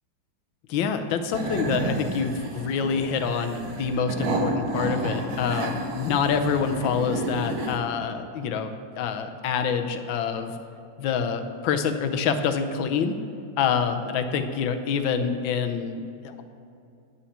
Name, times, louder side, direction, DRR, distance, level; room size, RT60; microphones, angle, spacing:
voice 1, 0.7-10.5 11.0-13.2 13.6-16.4, left 6 dB, 80° left, 8 dB, 1.5 m, -26 dB
sound 1, 1.3-7.8, right 2 dB, 55° right, 1.4 m, -31 dB
9.7 x 5.7 x 7.3 m, 2.6 s
omnidirectional pair, 2.1 m